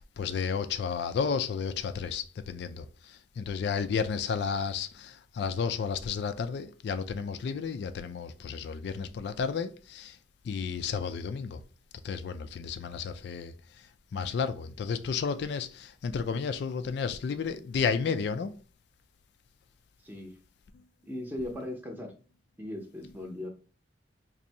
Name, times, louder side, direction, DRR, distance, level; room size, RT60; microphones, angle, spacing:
voice 1, 0.0-10.2 10.4-11.6 12.0-13.5 14.1-18.6, left 6 dB, 55° left, 0.3 m, -32 dB
voice 2, 20.0-20.4 21.0-22.1 22.6-23.5, left 1 dB, 10° right, 0.7 m, -38 dB
2.6 x 2.6 x 4.1 m
head